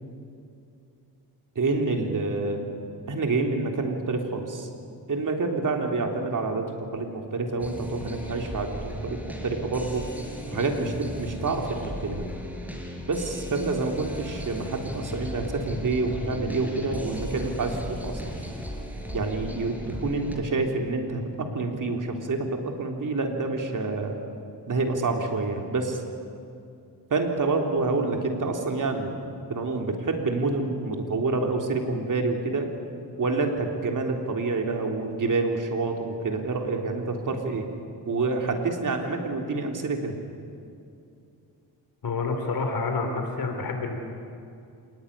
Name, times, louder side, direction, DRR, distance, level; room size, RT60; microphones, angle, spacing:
voice 1, 1.6-2.6 3.1-4.7 5.1-6.7 6.9-8.8 9.0-10.0 10.5-12.3 13.0-18.4 19.1-19.8 20.0-24.2 24.7-26.0 27.1-29.1 29.5-32.7 33.2-37.6 38.1-40.2, right 3 dB, 50° right, 3 dB, 3.6 m, -27 dB
sound 1, 7.6-20.4, equal, 5° right, 4.7 m, -36 dB
voice 2, 42.0-44.0, left 3 dB, 60° left, 4 dB, 3.6 m, -28 dB
27.0 x 19.0 x 9.9 m, 2.5 s
cardioid pair, 110°, 40 cm